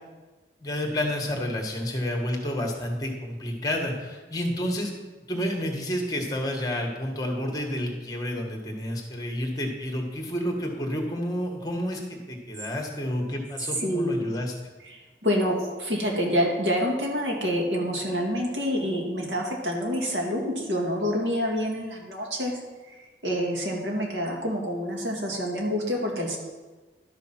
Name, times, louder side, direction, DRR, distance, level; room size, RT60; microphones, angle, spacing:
voice 1, 0.6-4.9 5.3-14.5, left 1 dB, 20° left, 2 dB, 1.5 m, -30 dB
voice 2, 13.8-14.3 14.9-22.5 23.2-26.4, equal, 80° right, -1 dB, 2.3 m, -27 dB
12.0 x 5.7 x 5.9 m, 1.3 s
head